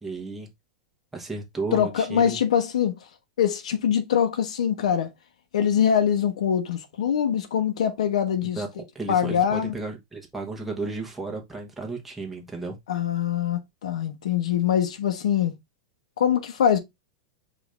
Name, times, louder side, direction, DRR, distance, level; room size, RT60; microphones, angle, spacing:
voice 1, 0.0-0.5 1.1-2.4 8.6-8.7 8.9-12.8, right 3 dB, 5° right, 1.1 m, -33 dB
voice 2, 1.7-3.0 3.4-5.1 5.5-9.7 12.9-15.5 16.2-16.8, left 8 dB, 85° left, 0.8 m, -23 dB
5.1 x 2.6 x 3.2 m
supercardioid pair, 150°, 3 cm